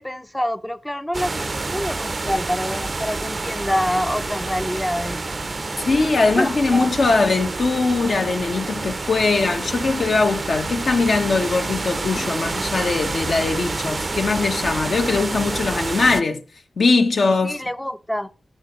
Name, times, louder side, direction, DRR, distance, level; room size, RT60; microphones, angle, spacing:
voice 1, 0.0-5.2 6.2-6.9 17.4-18.3, equal, 10° left, 0.5 m, -26 dB
sound 1, 1.1-16.2, right 3 dB, 40° right, 0.5 m, -28 dB
voice 2, 5.8-16.4 16.8-17.6, left 3 dB, 70° left, 1.2 m, -21 dB
14.0 x 6.1 x 3.1 m
wide cardioid pair, 75°, 0 cm